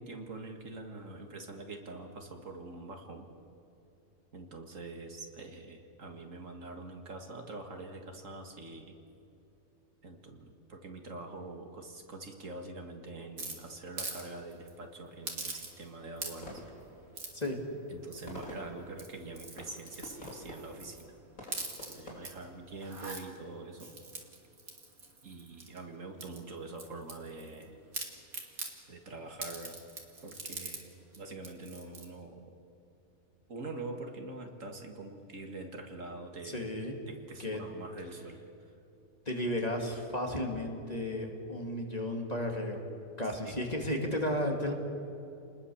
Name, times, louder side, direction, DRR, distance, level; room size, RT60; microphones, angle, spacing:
voice 1, 0.0-3.3 4.3-9.0 10.0-16.6 17.9-21.1 21.8-23.9 25.2-27.8 28.9-29.8 30.2-32.5 33.5-36.7 37.1-38.7 43.4-43.6, right 2 dB, 65° right, 4 dB, 2.3 m, -45 dB
sound 1, 13.4-14.2 14.5-14.7 15.3-15.9 16.2-16.6 17.2-17.5 18.1-18.5 18.9-21.0 21.4-22.3 22.8-23.2 23.8-25.8 26.2-27.6 27.9-28.7 29.4-30.8 31.1-31.2 31.4-32.1, right 3 dB, 80° right, 3.1 m, -42 dB
sound 2, 16.2-23.0, left 1 dB, 75° left, 3.8 m, -49 dB
voice 2, 36.5-37.0 37.4-37.6 39.3-42.8 43.2-44.7, left 1 dB, 25° left, 2 dB, 2.6 m, -33 dB
28.5 x 20.5 x 7.2 m, 2.8 s
omnidirectional pair, 1.5 m